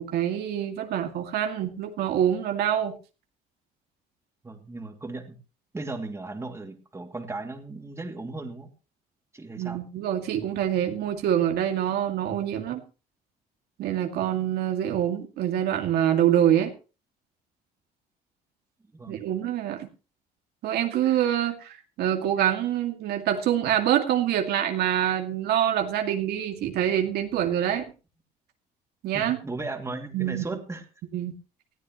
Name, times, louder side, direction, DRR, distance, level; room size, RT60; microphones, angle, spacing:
voice 1, 0.0-3.0 9.6-12.8 13.8-16.7 19.1-19.9 20.6-27.8 29.0-29.4 30.1-30.5 31.1-31.3, right 10 dB, 75° right, 4 dB, 2.2 m, -25 dB
voice 2, 4.4-5.4 5.7-8.7 9.3-9.8 18.9-19.2 29.1-30.8, right 3 dB, 15° right, 4 dB, 2.6 m, -36 dB
19.5 x 14.0 x 3.1 m, 0.33 s
cardioid pair, 110°, 17 cm